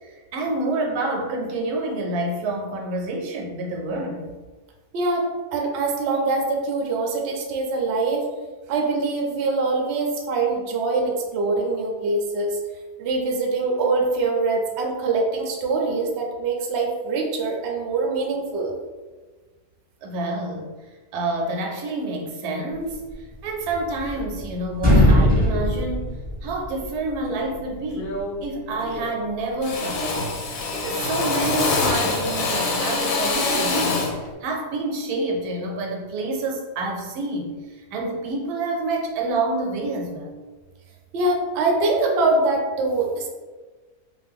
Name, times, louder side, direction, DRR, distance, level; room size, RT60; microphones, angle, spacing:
voice 1, 0.0-4.4 20.0-20.8 21.1-30.3 30.7-34.1 34.4-40.3, right 2 dB, 85° right, 1 dB, 1.1 m, -28 dB
voice 2, 4.9-8.3 8.7-12.6 13.0-18.7 41.1-43.3, right 3 dB, 65° right, 0 dB, 0.7 m, -23 dB
sound 1, 23.6-24.4 24.7-26.9, left 1 dB, 5° left, 0.9 m, -19 dB
Drill, 27.3-27.5 27.9-28.4 28.7-29.3 29.6-34.2, left 3 dB, 70° left, 1.0 m, -25 dB
2.6 x 2.5 x 3.4 m, 1.3 s
omnidirectional pair, 1.6 m